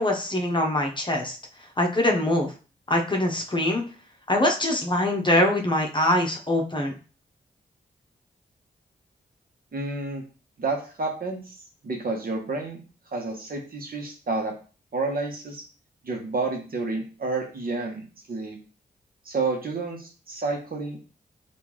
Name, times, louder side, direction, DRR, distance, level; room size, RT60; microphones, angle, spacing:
voice 1, 0.0-1.4 1.8-2.5 2.9-3.8 4.3-6.9, left 1 dB, 25° left, 2 dB, 0.9 m, -23 dB
voice 2, 9.7-10.2 10.6-11.5 11.8-12.8 13.1-14.5 14.9-15.6 16.0-18.6 19.2-21.2, right 3 dB, 55° right, 1 dB, 1.1 m, -30 dB
3.5 x 2.6 x 3.1 m, 0.36 s
supercardioid pair, 40°, 18 cm